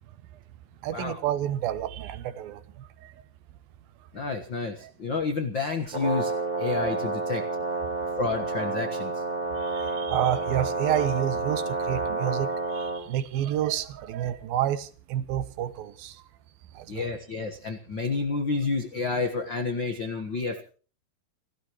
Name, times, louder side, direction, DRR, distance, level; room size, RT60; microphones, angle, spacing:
voice 1, 0.8-2.6 3.0-3.1 9.6-16.2 16.8-17.1, right 11 dB, 75° right, 2.6 m, -29 dB
voice 2, 4.1-6.3 6.6-7.4 8.2-9.1 16.9-20.6, left 4 dB, 70° left, 1.1 m, -30 dB
Brass instrument, 5.9-13.0, right 3 dB, 15° right, 5.0 m, -30 dB
30.0 x 14.0 x 3.1 m
omnidirectional pair, 4.5 m